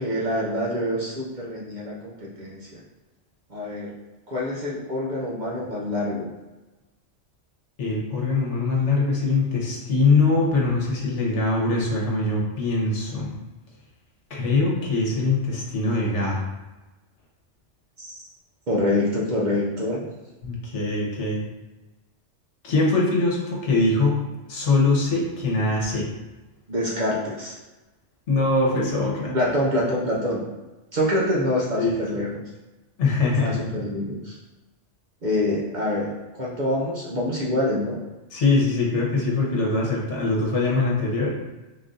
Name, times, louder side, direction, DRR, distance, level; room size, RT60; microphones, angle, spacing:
voice 1, 0.0-2.8 3.5-3.9 4.3-6.3 18.0-18.2 18.7-20.1 26.7-27.6 29.3-30.5 30.9-32.3 33.4-34.4 35.2-36.1 36.4-38.0, left 1 dB, 45° right, -5 dB, 0.7 m, -26 dB
voice 2, 7.8-13.3 14.3-16.4 20.4-21.4 22.6-26.1 28.3-29.4 31.8-31.9 33.0-33.6 38.3-41.3, left 3 dB, 70° left, -3 dB, 1.3 m, -22 dB
3.7 x 2.6 x 3.7 m, 1.1 s
omnidirectional pair, 1.3 m